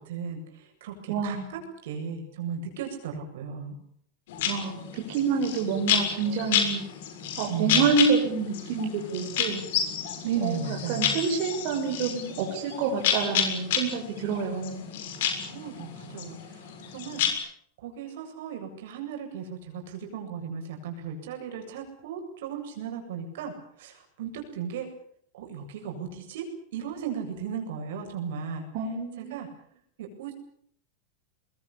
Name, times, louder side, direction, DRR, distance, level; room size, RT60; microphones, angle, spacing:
voice 1, 0.0-1.4 1.8-3.8 7.5-7.8 10.2-11.2 15.5-16.6 16.9-17.2 17.8-23.5 23.8-24.9 25.3-26.4 26.7-28.6 29.2-29.5 30.0-30.3, right 7 dB, 75° right, 4 dB, 8.0 m, -35 dB
voice 2, 1.1-1.5 4.5-6.8 7.4-9.6 10.4-14.9 28.7-29.4, right 5 dB, 50° right, 1 dB, 6.1 m, -28 dB
sound 1, 4.3-17.3, left 8 dB, 70° left, 6.8 m, -30 dB
24.0 x 21.5 x 8.7 m, 0.64 s
supercardioid pair, 160°, 0 cm